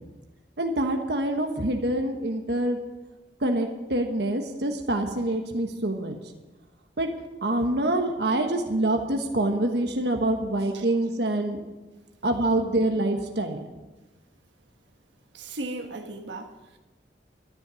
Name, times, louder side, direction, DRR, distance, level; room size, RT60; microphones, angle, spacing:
voice 1, 0.6-2.8 3.4-6.2 7.0-7.1 7.4-11.6 12.2-13.7, right 1 dB, 70° right, 3 dB, 1.3 m, -26 dB
voice 2, 15.3-16.8, right 2 dB, 90° right, 4 dB, 1.4 m, -37 dB
12.5 x 11.5 x 6.3 m, 1.1 s
head